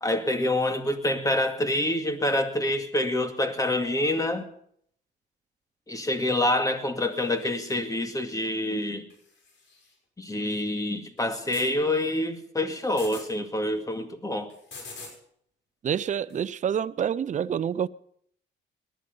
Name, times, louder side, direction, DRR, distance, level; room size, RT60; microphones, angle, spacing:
voice 1, 0.0-4.5 5.9-9.1 10.2-14.5, left 1 dB, 15° left, 2.1 m, -27 dB
sound 1, 7.1-7.9 9.1-9.9 11.2-11.7 12.8-13.3 14.5-15.2 16.3-16.4, left 4 dB, 65° left, 6.3 m, -46 dB
voice 2, 15.8-17.9, right 8 dB, 40° right, 0.5 m, -27 dB
19.0 x 11.5 x 5.4 m
cardioid pair, 90°, 20 cm